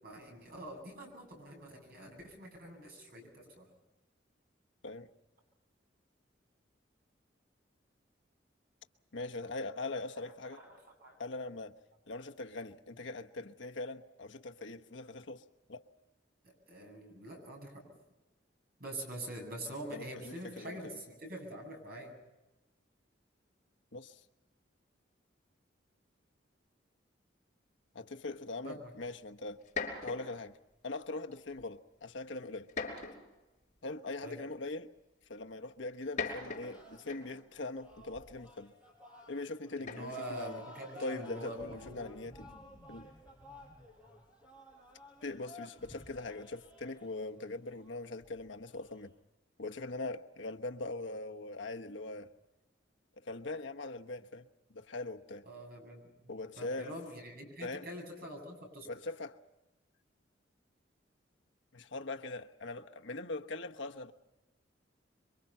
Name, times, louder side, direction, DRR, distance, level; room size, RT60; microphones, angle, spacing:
voice 1, 0.0-3.6 10.6-11.2 16.4-17.8 18.8-22.1 28.6-28.9 34.2-34.4 39.8-42.1 55.4-58.9, right 1 dB, 55° right, 7.9 m, -45 dB
voice 2, 9.1-10.6 11.2-11.8 12.1-15.4 15.7-15.8 19.9-21.0 23.9-24.2 27.9-29.7 30.0-30.5 30.8-32.7 33.8-34.9 35.3-38.7 39.3-40.6 41.0-42.5 42.9-43.1 45.2-49.1 49.6-52.3 53.2-55.5 56.3-57.0 57.6-57.9 58.8-59.4 61.7-64.1, left 2 dB, 85° left, 1.1 m, -41 dB
sound 1, 29.0-29.1 29.6-30.4 31.3-31.6 32.7-33.4 34.5-34.6 35.9-37.5 39.8-40.3, left 4 dB, 40° left, 5.3 m, -40 dB
sound 2, 36.1-49.1, left 1 dB, 5° right, 5.7 m, -55 dB
27.0 x 24.0 x 5.7 m
head